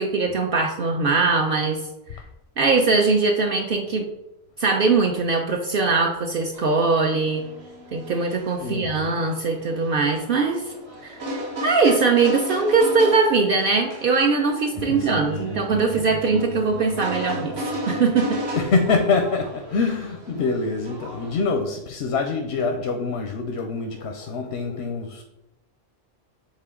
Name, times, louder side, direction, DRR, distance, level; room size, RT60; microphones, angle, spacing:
voice 1, 0.0-1.9 2.1-2.2 2.6-4.1 4.6-7.4 7.9-10.7 11.0-11.3 11.6-17.5 17.9-18.4, right 4 dB, 60° right, 2 dB, 0.8 m, -21 dB
sound 1, 6.5-21.4, equal, 75° right, 1.6 m, -35 dB
voice 2, 8.6-9.2 14.9-15.2 18.6-25.2, left 4 dB, 90° left, 4 dB, 0.9 m, -25 dB
sound 2, 14.7-20.4, right 3 dB, 30° right, 0.5 m, -37 dB
7.5 x 3.8 x 3.7 m, 0.92 s
omnidirectional pair, 1.1 m